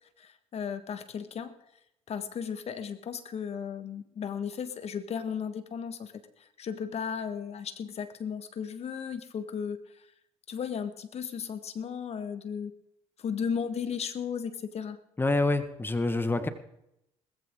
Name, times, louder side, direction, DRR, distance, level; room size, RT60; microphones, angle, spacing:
voice 1, 0.2-1.5 2.1-10.1 10.5-12.7 13.2-15.0, left 7 dB, 50° left, 10 dB, 1.7 m, -35 dB
voice 2, 15.2-16.5, left 2 dB, 15° left, 10 dB, 1.6 m, -26 dB
20.0 x 14.5 x 3.8 m, 0.80 s
hypercardioid pair, 65°, 14 cm